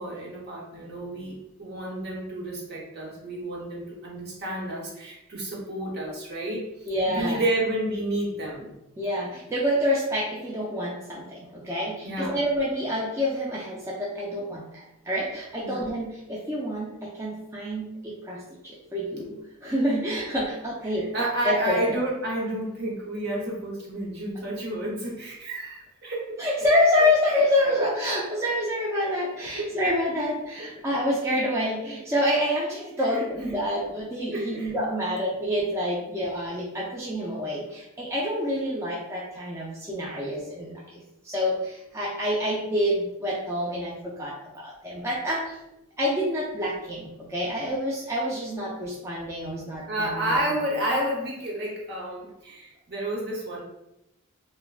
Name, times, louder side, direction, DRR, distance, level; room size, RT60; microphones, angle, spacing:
voice 1, 0.0-6.7 7.0-8.7 12.0-12.4 15.6-15.9 20.8-26.7 29.6-29.7 30.6-30.7 33.0-33.6 34.3-34.7 36.1-36.3 49.9-53.6, right 1 dB, 50° right, -3 dB, 0.8 m, -31 dB
voice 2, 6.9-7.4 9.0-14.7 15.1-19.3 19.6-21.1 21.4-22.0 26.4-45.6 46.0-50.4, left 1 dB, 15° right, -6 dB, 0.3 m, -27 dB
3.3 x 2.1 x 2.3 m, 0.87 s
head